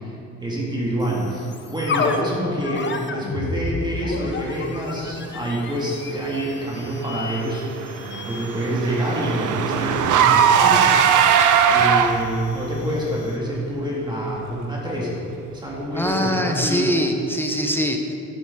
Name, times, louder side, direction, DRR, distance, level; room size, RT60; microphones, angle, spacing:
voice 1, 0.0-7.7 8.2-11.3 11.7-15.2 15.5-17.0, right 1 dB, 15° right, -4 dB, 2.0 m, -27 dB
sound 1, 1.0-13.5, left 4 dB, 40° left, 0.7 m, -33 dB
Car / Engine, 7.4-12.4, right 8 dB, 80° right, 0.6 m, -19 dB
voice 2, 15.9-18.1, equal, 5° left, 3 dB, 0.8 m, -23 dB
8.4 x 8.1 x 3.7 m, 2.7 s
cardioid pair, 90°, 30 cm